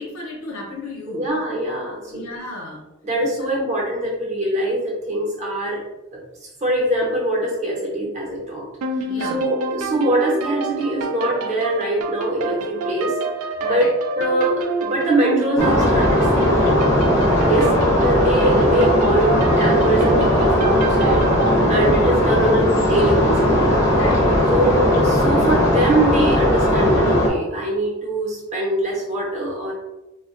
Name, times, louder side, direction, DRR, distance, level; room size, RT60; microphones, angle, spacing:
voice 1, 0.0-1.2 2.1-2.8 9.1-9.4 13.6-13.9 17.5-17.7 23.9-24.2, left 3 dB, 75° left, -1 dB, 0.8 m, -32 dB
voice 2, 1.1-2.3 3.0-5.8 6.1-8.6 9.2-13.1 13.6-13.9 14.2-16.7 17.4-21.2 21.7-23.3 24.5-29.7, right 1 dB, 35° right, -2 dB, 0.8 m, -23 dB
sound 1, 8.8-21.6, right 3 dB, 90° right, 0.4 m, -27 dB
sound 2, 15.6-27.3, left 1 dB, 15° left, 0.6 m, -17 dB
3.5 x 2.2 x 2.5 m, 0.99 s
head